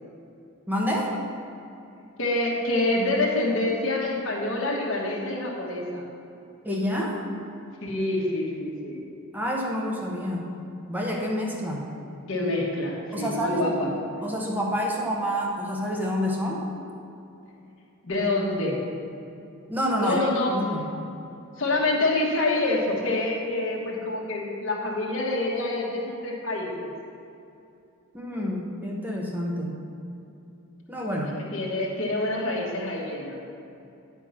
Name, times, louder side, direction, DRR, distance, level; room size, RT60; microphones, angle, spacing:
voice 1, 0.7-1.1 6.6-7.4 9.3-10.5 10.9-11.8 13.1-13.7 14.2-16.6 19.7-20.2 20.5-20.9 28.1-29.8 30.9-31.4, equal, 10° right, -2 dB, 1.0 m, -28 dB
voice 2, 2.2-6.0 7.8-9.0 12.3-13.9 18.0-18.8 20.0-20.5 21.6-26.9 31.5-33.4, left 2 dB, 65° left, -3 dB, 1.4 m, -26 dB
10.0 x 4.6 x 5.6 m, 2.7 s
head